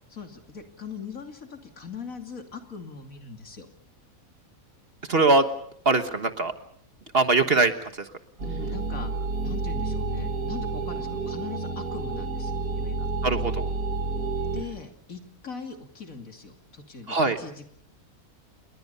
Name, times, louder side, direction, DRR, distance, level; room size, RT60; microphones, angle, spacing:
voice 1, 0.1-3.7 8.4-9.1 9.4-13.1 14.5-17.7, left 5 dB, 65° left, 5 dB, 3.1 m, -40 dB
voice 2, 5.1-5.5 5.8-6.5 7.1-7.7 13.2-13.7 17.1-17.4, right 3 dB, 45° right, 8 dB, 1.5 m, -21 dB
sound 1, 8.4-14.6, right 3 dB, 80° right, 3.1 m, -30 dB
29.0 x 22.0 x 5.6 m, 0.67 s
omnidirectional pair, 1.5 m